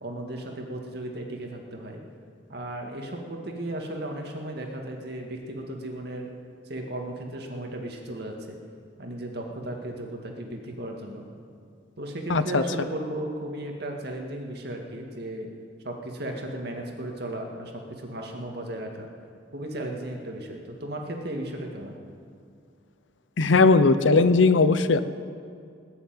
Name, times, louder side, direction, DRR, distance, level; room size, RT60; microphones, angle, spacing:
voice 1, 0.0-2.0 2.5-6.3 6.6-8.6 9.0-11.3 12.0-15.5 15.8-19.1 19.5-22.0, right 1 dB, 60° right, 2 dB, 2.1 m, -35 dB
voice 2, 12.3-12.6 23.4-25.0, left 3 dB, 85° left, 13 dB, 0.7 m, -18 dB
19.5 x 7.2 x 8.9 m, 2.3 s
head